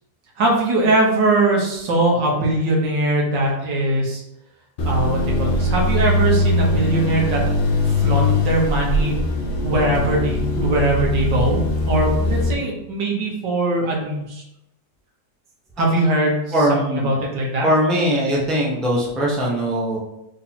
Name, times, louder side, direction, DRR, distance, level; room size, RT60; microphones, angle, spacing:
voice 1, 0.4-4.2 4.9-7.4 8.0-9.2 9.6-11.6 11.9-14.4 15.8-17.7, right 2 dB, 85° right, -1 dB, 1.8 m, -21 dB
sound 1, 4.8-12.5, left 2 dB, 55° left, 0.6 m, -21 dB
voice 2, 16.5-17.2 17.6-20.0, equal, ahead, -4 dB, 0.7 m, -20 dB
4.4 x 2.8 x 4.2 m, 0.85 s
omnidirectional pair, 1.8 m